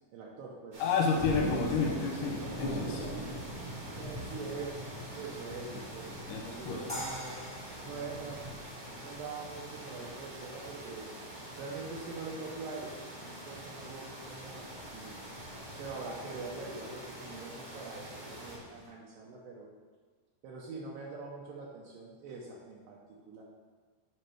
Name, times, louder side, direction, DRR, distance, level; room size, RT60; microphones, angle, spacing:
voice 1, 0.1-0.8 3.9-4.7 5.1-7.4 7.8-8.4 9.0-11.1 11.6-15.2 15.8-19.7 20.4-23.4, right 4 dB, 80° right, -3 dB, 2.4 m, -44 dB
sound 1, 0.7-18.6, right 1 dB, 45° right, 1.2 m, -46 dB
voice 2, 0.8-3.1 6.3-6.8, left 5 dB, 75° left, 0 dB, 2.4 m, -30 dB
sound 2, 1.0-18.9, right 1 dB, 20° right, 1.3 m, -44 dB
sound 3, 6.9-9.9, equal, 5° left, 0.9 m, -44 dB
7.9 x 5.2 x 4.6 m, 1.4 s
omnidirectional pair, 4.3 m